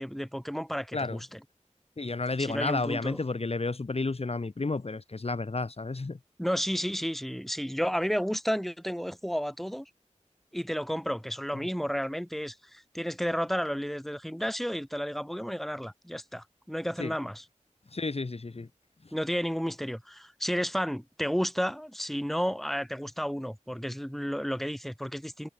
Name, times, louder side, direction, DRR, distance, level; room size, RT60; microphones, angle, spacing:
voice 1, 0.0-1.4 2.4-3.2 6.4-9.9 10.5-17.4 19.1-25.5, equal, ahead, 5.1 m, -32 dB
voice 2, 2.0-6.2 17.0-17.1 17.9-18.7, left 3 dB, 50° left, 1.9 m, -31 dB
wide cardioid pair, 65°, 13 cm